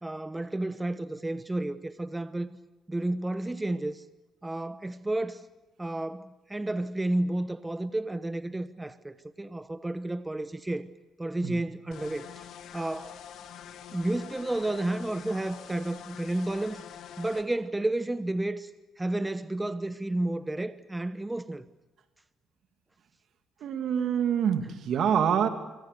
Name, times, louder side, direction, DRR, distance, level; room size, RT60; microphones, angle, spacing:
voice 1, 0.0-2.5 2.9-4.0 4.4-5.5 5.8-10.9 11.2-12.5 12.7-13.1 13.9-16.8 17.2-18.7 19.0-21.7 24.6-24.7, right 1 dB, 15° right, 1.0 m, -31 dB
sound 1, 11.9-17.4, left 9 dB, 75° left, 2.2 m, -45 dB
voice 2, 23.6-25.5, right 8 dB, 70° right, 2.5 m, -26 dB
26.0 x 25.0 x 6.8 m
cardioid pair, 90°, 0 cm